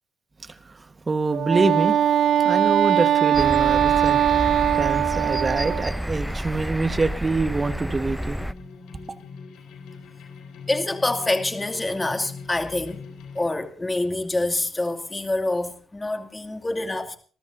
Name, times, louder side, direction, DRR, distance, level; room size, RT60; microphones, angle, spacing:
voice 1, 0.4-2.0 2.4-4.5 4.7-8.4, right 3 dB, 25° right, 1.3 m, -25 dB
Wind instrument woodwind instrument, 1.3-6.0, right 10 dB, 65° right, 0.6 m, -21 dB
sound 1, 3.3-8.5, equal, ahead, 0.6 m, -30 dB
sound 2, 8.1-13.5, left 5 dB, 85° left, 4.0 m, -42 dB
voice 2, 10.7-13.0 13.3-17.2, left 2 dB, 15° left, 2.6 m, -26 dB
29.0 x 13.5 x 2.7 m
cardioid pair, 90°, 0 cm